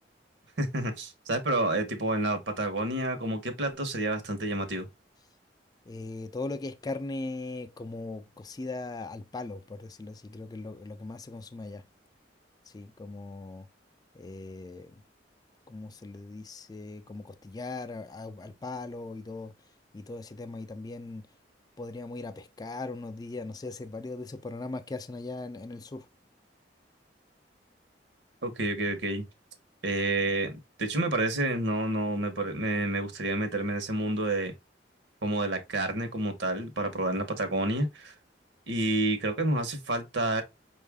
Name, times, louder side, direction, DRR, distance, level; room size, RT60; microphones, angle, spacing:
voice 1, 0.6-4.9 28.4-29.2 29.8-34.5 35.2-38.1 38.7-40.4, right 2 dB, 80° right, 1.0 m, -29 dB
voice 2, 5.9-11.8 12.7-13.7 14.2-14.9 15.7-19.5 19.9-21.2 21.8-26.1, left 2 dB, 20° left, 0.3 m, -39 dB
5.3 x 2.5 x 3.4 m
head